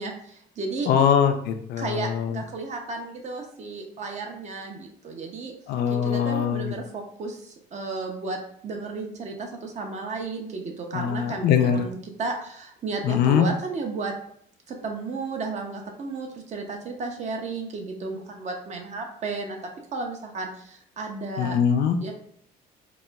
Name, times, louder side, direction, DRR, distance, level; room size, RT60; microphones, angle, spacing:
voice 1, 0.0-0.9 1.8-5.5 5.9-8.4 8.6-14.1 14.7-19.6 19.9-21.6 22.0-22.1, right 3 dB, 45° right, 3 dB, 0.6 m, -33 dB
voice 2, 0.9-2.4 5.7-6.7 10.9-11.9 13.0-13.5 21.4-22.0, left 8 dB, 70° left, 6 dB, 0.4 m, -22 dB
4.1 x 2.2 x 2.2 m, 0.66 s
cardioid pair, 110°, 17 cm